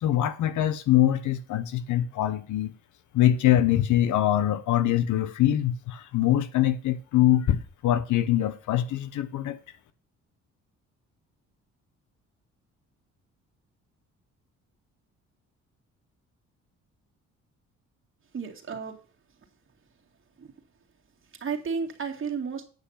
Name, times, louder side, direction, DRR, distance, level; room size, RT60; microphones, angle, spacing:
voice 1, 0.0-2.7 3.1-9.6, left 12 dB, 80° left, 1.1 m, -23 dB
voice 2, 18.3-19.0 20.4-20.5 21.3-22.6, right 5 dB, 40° right, 2.2 m, -32 dB
9.3 x 5.7 x 5.7 m
cardioid pair, 90°, 30 cm